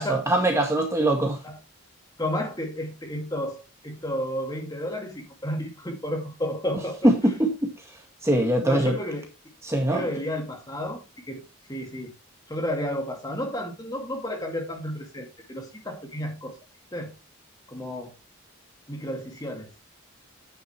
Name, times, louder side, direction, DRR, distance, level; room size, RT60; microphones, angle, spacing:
voice 1, 0.0-1.4 7.0-7.7 8.2-9.0 9.6-10.1, right 1 dB, 15° right, 1.8 m, -22 dB
voice 2, 2.2-7.1 8.6-9.3 9.9-11.0 11.3-11.4 11.7-12.1 12.5-16.6 16.9-17.1 17.7-18.1 18.9-19.7, equal, 20° left, 2.4 m, -32 dB
9.5 x 9.2 x 3.3 m
head